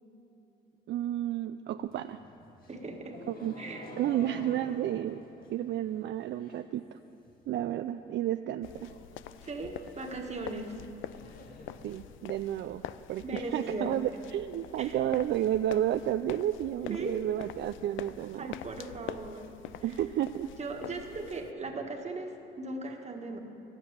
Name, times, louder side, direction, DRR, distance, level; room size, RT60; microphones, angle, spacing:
voice 1, 0.9-2.2 3.3-3.5 4.0-5.2 5.5-7.0 7.5-8.9 11.8-12.8 13.1-18.5 19.8-20.5, right 12 dB, 65° right, 9 dB, 0.4 m, -31 dB
sound 1, 1.8-6.8 7.1-7.6 7.9-8.0 8.3-8.4 8.7-12.7, left 2 dB, 45° left, 1.7 m, -50 dB
voice 2, 2.7-3.2 3.6-3.9 9.4-10.8 13.2-14.0 14.8-15.0 16.9-17.1 18.4-19.5 20.6-23.4, right 2 dB, 35° right, 2 dB, 1.6 m, -38 dB
sound 2, 8.6-21.5, left 11 dB, 80° left, 0.4 m, -46 dB
12.0 x 8.0 x 9.5 m, 2.8 s
cardioid pair, 90°, 20 cm